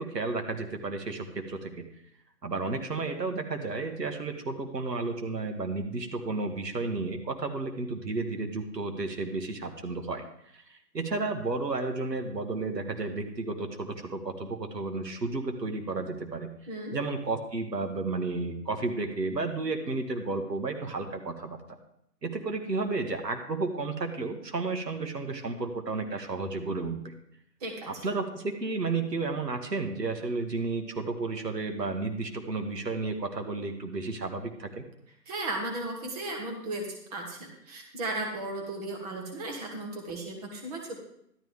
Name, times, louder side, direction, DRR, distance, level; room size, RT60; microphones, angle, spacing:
voice 1, 0.0-1.8 2.4-10.2 10.5-16.5 16.9-21.8 22.2-27.1 27.9-34.8, right 3 dB, 80° right, 5 dB, 1.9 m, -32 dB
voice 2, 16.7-17.0 27.6-28.0 35.3-41.0, right 2 dB, 25° right, 1 dB, 1.6 m, -35 dB
12.0 x 11.5 x 3.5 m, 0.73 s
figure-of-eight pair, 155°, 49 cm